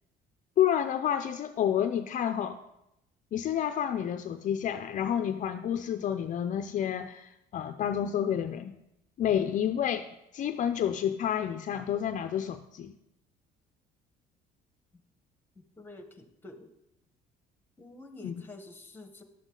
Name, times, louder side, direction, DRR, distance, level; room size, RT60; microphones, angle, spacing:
voice 1, 0.6-2.6 3.3-8.8 9.2-10.1 10.3-12.9 18.2-18.3, left 9 dB, 50° left, 8 dB, 0.5 m, -29 dB
voice 2, 15.5-16.7 17.8-19.2, left 2 dB, 10° left, 7 dB, 1.2 m, -48 dB
11.5 x 8.0 x 3.8 m, 0.85 s
cardioid pair, 110°, 17 cm